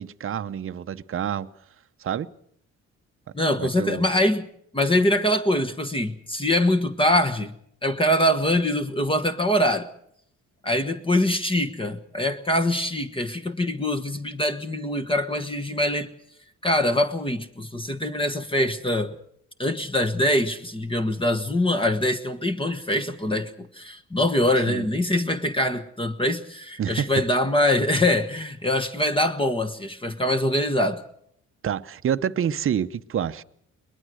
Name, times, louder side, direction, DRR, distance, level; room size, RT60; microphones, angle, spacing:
voice 1, 0.0-1.5 2.0-2.3 3.6-4.1 24.7-24.9 26.8-27.2 31.6-33.4, right 9 dB, 45° right, 0.8 m, -28 dB
voice 2, 3.3-4.4 4.7-7.5 7.8-9.9 10.6-16.1 16.6-19.1 19.6-31.0, left 1 dB, 15° left, 1.4 m, -23 dB
22.0 x 20.5 x 6.4 m
cardioid pair, 90°, 30 cm